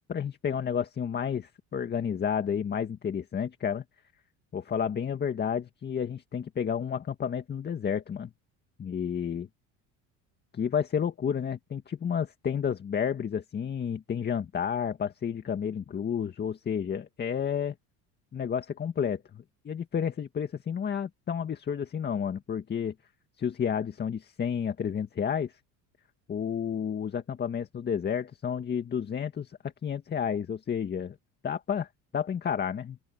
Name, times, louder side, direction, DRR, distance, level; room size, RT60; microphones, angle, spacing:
voice 1, 0.1-3.8 4.5-8.3 8.8-9.5 10.5-17.7 18.3-22.9 23.4-25.6 26.3-31.2 31.4-33.0, left 7 dB, 30° left, 2.0 m, -31 dB
open air
cardioid pair, 130°, 34 cm